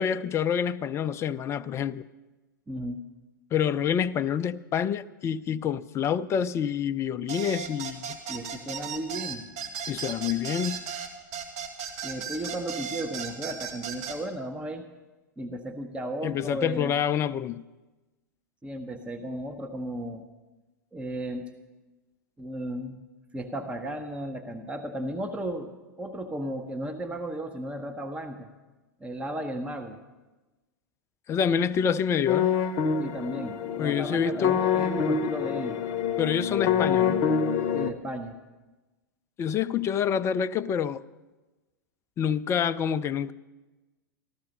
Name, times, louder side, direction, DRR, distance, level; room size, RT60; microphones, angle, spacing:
voice 1, 0.0-2.0 3.5-8.2 9.9-10.8 16.2-17.6 31.3-32.5 33.8-34.6 36.2-37.2 39.4-41.0 42.2-43.3, left 8 dB, 25° left, 0.5 m, -27 dB
voice 2, 2.7-3.0 8.3-9.5 12.0-14.8 15.4-17.0 18.6-20.2 20.9-21.5 22.4-23.0 23.3-25.7 26.0-28.5 29.0-30.0 33.0-35.8 37.7-38.3, right 1 dB, 10° right, 0.9 m, -34 dB
sound 1, 7.3-14.2, right 7 dB, 50° right, 2.0 m, -36 dB
sound 2, 32.3-37.9, left 7 dB, 45° left, 0.8 m, -26 dB
14.0 x 13.5 x 5.3 m
figure-of-eight pair, 95°, 11 cm